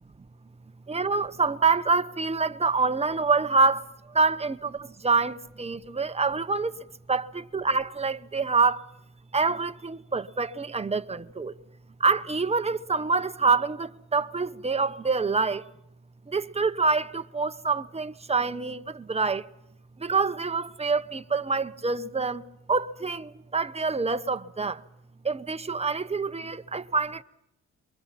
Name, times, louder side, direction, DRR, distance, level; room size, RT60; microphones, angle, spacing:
voice 1, 0.9-6.7 7.1-8.9 9.3-11.5 12.0-15.6 16.3-19.5 20.0-22.4 22.7-24.8 25.2-27.2, right 4 dB, 20° right, 1.0 m, -26 dB
28.5 x 24.0 x 5.9 m
cardioid pair, 90°, 30 cm